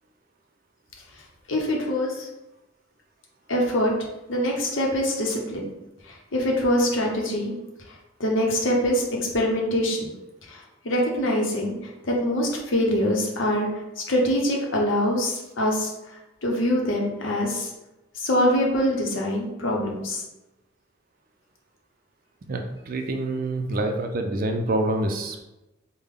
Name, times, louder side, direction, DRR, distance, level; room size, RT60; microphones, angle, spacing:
voice 1, 1.5-2.3 3.5-3.9 4.3-5.7 6.3-7.5 8.2-9.1 9.3-10.1 10.5-10.6 10.8-11.7 12.0-13.7 14.0-15.9 16.4-17.7 18.2-20.2, equal, 75° left, -1 dB, 0.8 m, -24 dB
voice 2, 22.5-25.4, right 2 dB, 45° right, 4 dB, 0.4 m, -26 dB
3.4 x 2.1 x 3.6 m, 0.96 s
head